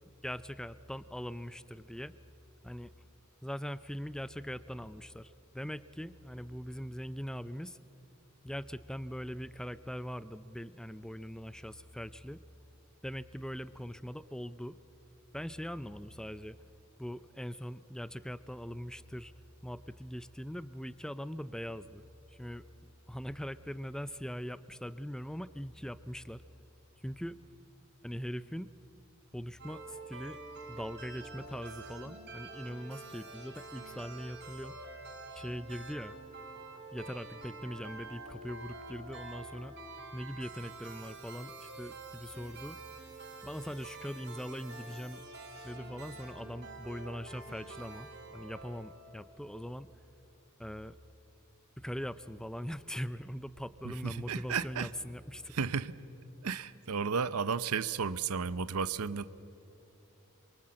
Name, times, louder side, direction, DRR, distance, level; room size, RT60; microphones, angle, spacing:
voice 1, 0.2-2.1 2.6-2.9 3.4-7.8 8.4-12.4 13.0-14.8 15.3-16.6 17.0-19.3 19.6-22.6 23.1-26.4 27.0-27.4 28.0-28.7 29.3-30.4 30.7-34.7 35.3-36.2 36.9-39.8 40.1-42.8 43.4-45.2 45.6-49.9 50.6-51.0 51.8-55.5, equal, 5° left, 15 dB, 0.5 m, -41 dB
sound 1, 29.6-49.5, right 3 dB, 50° right, 3.7 m, -48 dB
voice 2, 53.8-54.9 55.5-56.0 56.4-59.3, right 6 dB, 90° right, 16 dB, 0.7 m, -33 dB
27.5 x 23.5 x 7.6 m, 2.9 s
head